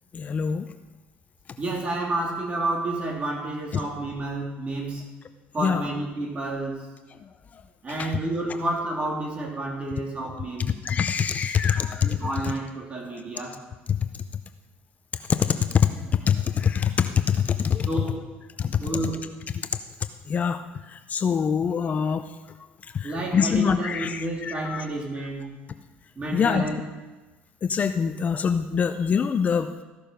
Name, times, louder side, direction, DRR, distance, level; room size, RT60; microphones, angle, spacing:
voice 1, 0.1-0.7 5.6-5.8 7.5-7.6 8.0-8.1 10.6-12.3 13.1-13.2 13.9-14.0 15.3-17.9 18.6-18.8 20.3-22.3 22.8-24.8 26.3-26.7 27.6-29.7, left 7 dB, 35° left, 9 dB, 0.5 m, -24 dB
voice 2, 1.6-5.0 5.5-6.8 7.8-10.7 12.0-13.6 17.9-18.4 18.8-19.3 23.0-25.5 26.2-26.8, right 2 dB, 30° right, -1 dB, 2.9 m, -30 dB
15.0 x 6.8 x 5.2 m, 1.2 s
cardioid pair, 105°, 4 cm